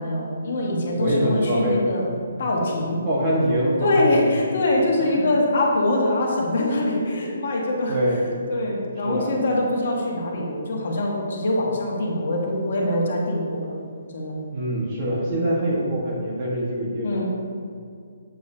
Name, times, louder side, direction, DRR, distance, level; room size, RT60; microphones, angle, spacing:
voice 1, 0.0-2.1 2.4-3.0 3.8-8.0 8.5-13.7 14.1-14.4 17.0-17.3, left 1 dB, 55° left, -2 dB, 1.6 m, -23 dB
voice 2, 1.0-1.8 3.0-4.4 5.2-5.3 7.9-8.3 9.0-9.3 14.5-17.3, equal, 25° right, -4 dB, 1.4 m, -24 dB
8.7 x 7.6 x 2.8 m, 2.2 s
hypercardioid pair, 170°, 0 cm